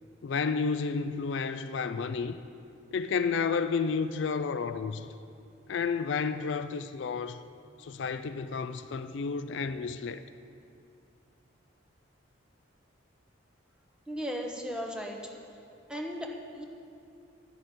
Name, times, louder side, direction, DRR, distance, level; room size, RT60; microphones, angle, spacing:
voice 1, 0.2-2.4 2.9-5.1 5.7-7.4 7.8-10.2, left 5 dB, 65° left, 0.4 m, -31 dB
voice 2, 14.1-15.3 15.9-16.6, equal, 5° right, 1.0 m, -36 dB
11.0 x 6.6 x 9.1 m
head